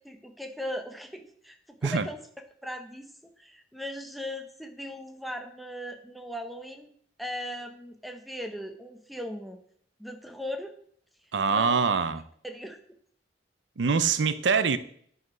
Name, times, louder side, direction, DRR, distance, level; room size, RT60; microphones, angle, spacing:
voice 1, 0.0-1.6 1.8-2.2 2.6-3.1 3.4-6.9 7.2-9.6 10.0-10.7 11.5-11.8 12.4-12.8, equal, ahead, 0.9 m, -38 dB
voice 2, 11.3-12.2 13.8-14.8, right 5 dB, 70° right, 0.6 m, -24 dB
9.3 x 4.9 x 6.1 m
head